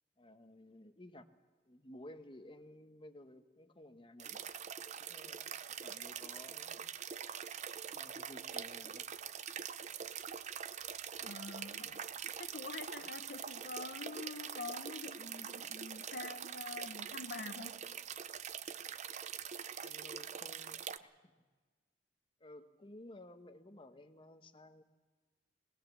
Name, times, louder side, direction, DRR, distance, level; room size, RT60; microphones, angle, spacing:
voice 1, 0.2-1.3 1.7-4.4 4.8-6.9 7.8-9.1 19.8-21.5 22.4-24.8, left 1 dB, 30° left, 1.1 m, -55 dB
sound 1, 4.2-21.0, right 8 dB, 40° right, 0.6 m, -44 dB
voice 2, 11.2-17.8, left 3 dB, 60° left, 1.0 m, -46 dB
21.5 x 18.0 x 7.3 m
head